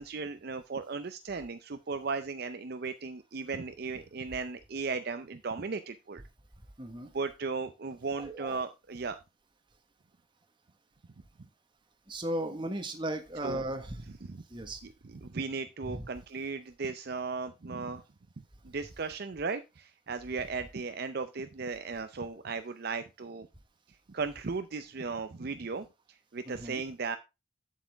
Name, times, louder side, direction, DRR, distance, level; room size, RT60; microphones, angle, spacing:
voice 1, 0.0-6.2 7.1-9.2 13.4-13.6 14.2-14.4 15.0-18.0 18.6-23.5 24.1-27.2, right 4 dB, 50° right, 9 dB, 0.5 m, -36 dB
voice 2, 6.8-7.1 8.2-8.6 12.1-14.1 14.5-14.8 15.9-16.1 26.5-26.8, right 1 dB, 25° right, 6 dB, 1.3 m, -36 dB
8.4 x 7.7 x 3.4 m, 0.25 s
head